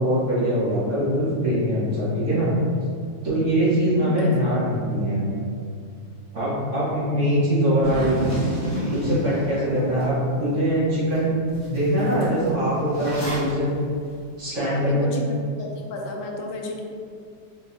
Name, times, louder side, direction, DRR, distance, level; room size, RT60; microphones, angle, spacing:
voice 1, 0.0-2.5 3.2-5.3 6.3-8.2 8.9-11.3 11.7-13.7 14.4-15.1, equal, 45° right, -10 dB, 1.2 m, -22 dB
voice 2, 4.0-4.3 9.7-9.9 14.6-16.8, left 3 dB, 80° left, 0 dB, 1.3 m, -33 dB
Zipper (clothing), 7.8-10.1 10.5-10.6 11.1-11.2 11.5-13.5, right 1 dB, 20° left, 0.9 m, -30 dB
3.8 x 3.4 x 2.6 m, 2.3 s
omnidirectional pair, 2.1 m